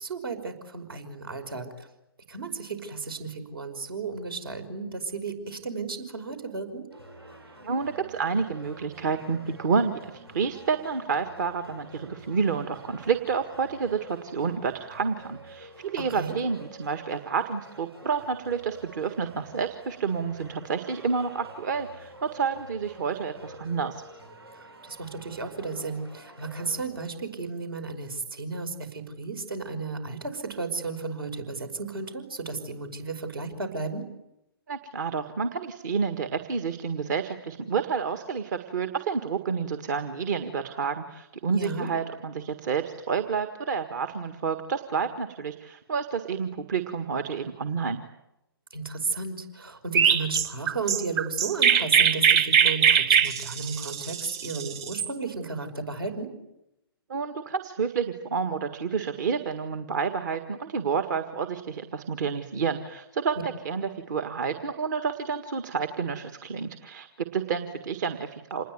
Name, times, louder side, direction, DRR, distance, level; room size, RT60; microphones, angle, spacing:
voice 1, 0.0-1.9 2.3-6.9 16.1-16.4 24.6-34.1 41.5-41.9 48.7-56.3, right 4 dB, 70° right, 7 dB, 5.6 m, -34 dB
sound 1, 6.9-26.8, right 1 dB, 85° right, 7.0 m, -48 dB
voice 2, 7.6-24.0 34.7-48.0 57.1-68.6, right 5 dB, 50° right, 8 dB, 1.7 m, -29 dB
Chirp tweet, 49.9-55.1, right 7 dB, 25° right, 1.4 m, -21 dB
27.5 x 20.5 x 9.6 m, 0.89 s
figure-of-eight pair, 125°, 13 cm